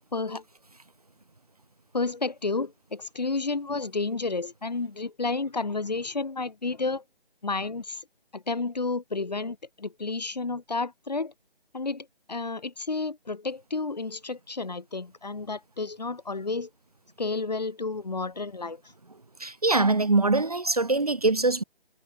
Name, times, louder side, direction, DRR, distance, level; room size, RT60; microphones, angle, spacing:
voice 1, 0.1-0.4 1.9-7.0 7.4-8.0 8.3-11.3 11.7-16.7 17.2-18.8, left 3 dB, 45° left, 2.4 m, -31 dB
voice 2, 19.4-21.6, right 3 dB, 40° right, 1.1 m, -23 dB
figure-of-eight pair, 180°, 30 cm